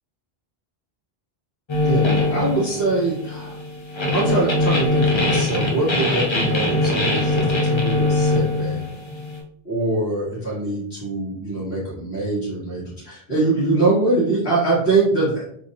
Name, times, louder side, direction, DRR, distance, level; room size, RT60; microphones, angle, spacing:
sound 1, 1.7-9.4, left 2 dB, 30° left, 0.7 m, -22 dB
voice 1, 2.3-3.6 4.1-8.8 9.6-15.4, right 2 dB, 80° left, -9 dB, 2.1 m, -23 dB
4.5 x 3.1 x 2.5 m, 0.66 s
omnidirectional pair, 1.0 m